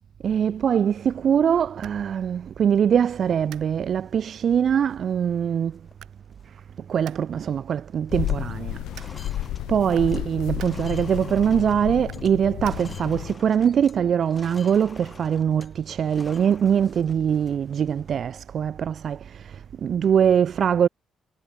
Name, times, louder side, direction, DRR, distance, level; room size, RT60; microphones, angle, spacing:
voice 1, 0.2-5.8 6.4-20.9, right 8 dB, 55° right, 0.4 m, -23 dB
sound 1, 3.0-4.1 4.6-4.7 4.9-5.3 5.7-5.9 6.2-7.3 7.5-7.8 8.0-14.0 14.3-18.1, left 3 dB, 25° left, 3.4 m, -48 dB
sound 2, 3.4-13.3, right 12 dB, 80° right, 1.0 m, -53 dB
sound 3, 8.1-13.4, left 14 dB, 85° left, 0.8 m, -31 dB
cardioid pair, 90°, 0 cm